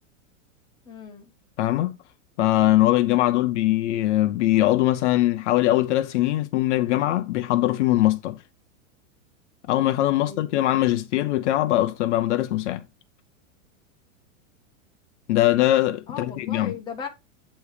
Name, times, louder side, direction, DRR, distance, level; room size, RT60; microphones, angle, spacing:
voice 1, 0.8-1.3 9.9-10.5 16.1-17.1, left 6 dB, 10° left, 1.0 m, -37 dB
voice 2, 1.6-2.0 2.4-8.4 9.7-12.8 15.3-16.7, left 15 dB, 55° left, 0.6 m, -21 dB
8.2 x 3.2 x 4.8 m
supercardioid pair, 160°, 41 cm